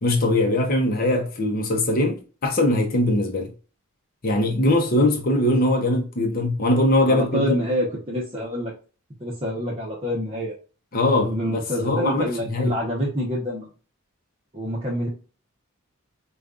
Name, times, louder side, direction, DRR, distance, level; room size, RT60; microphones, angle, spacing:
voice 1, 0.0-3.5 4.2-7.5 10.9-11.3 11.8-12.7, left 1 dB, 40° left, 0.7 m, -21 dB
voice 2, 7.0-8.7 9.2-10.5 11.2-13.7 14.5-15.1, equal, 25° right, 0.8 m, -27 dB
5.0 x 2.3 x 2.4 m
head